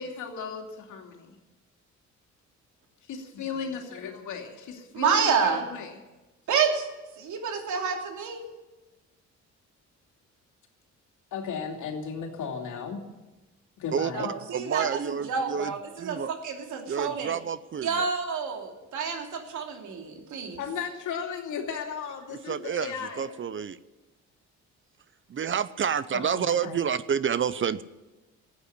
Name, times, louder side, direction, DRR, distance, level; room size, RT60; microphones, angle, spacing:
voice 1, 0.0-1.3 3.1-6.0 11.3-13.0 13.8-14.3 20.6-23.3 26.1-26.9, left 6 dB, 80° left, 2 dB, 2.7 m, -35 dB
voice 2, 4.9-5.6 6.5-6.9 7.2-8.5 14.1-17.3 17.8-20.6, right 6 dB, 75° right, 3 dB, 2.9 m, -29 dB
voice 3, 14.5-15.7 16.0-16.3 16.9-18.0 22.3-23.8 25.3-27.8, right 7 dB, 40° right, 16 dB, 0.7 m, -29 dB
14.0 x 9.0 x 9.9 m, 1.1 s
cardioid pair, 90°, 30 cm